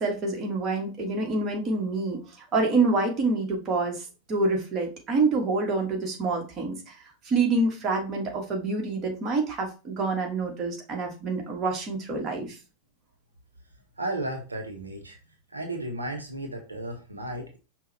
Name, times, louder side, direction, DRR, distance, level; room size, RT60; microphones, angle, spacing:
voice 1, 0.0-2.2 2.5-6.9 7.2-12.6, right 3 dB, 30° right, 1 dB, 1.4 m, -27 dB
voice 2, 14.0-15.2 15.5-17.6, right 1 dB, 80° right, 3 dB, 0.8 m, -34 dB
5.5 x 2.3 x 3.9 m, 0.32 s
figure-of-eight pair, 90°, 0 cm